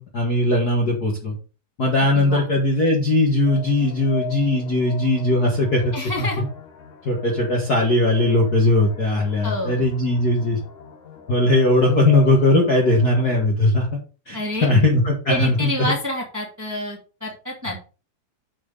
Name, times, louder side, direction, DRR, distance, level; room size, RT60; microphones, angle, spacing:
voice 1, 0.0-1.4 1.8-6.3 7.0-10.6 11.3-13.9 14.3-15.7, left 1 dB, 40° left, -1 dB, 1.7 m, -19 dB
voice 2, 2.0-2.5 5.9-6.4 9.4-9.8 14.3-14.7 15.3-17.8, left 1 dB, 5° right, -1 dB, 2.0 m, -28 dB
sound 1, 3.5-13.5, left 8 dB, 70° left, 2.9 m, -39 dB
8.6 x 4.6 x 5.6 m, 0.34 s
omnidirectional pair, 3.6 m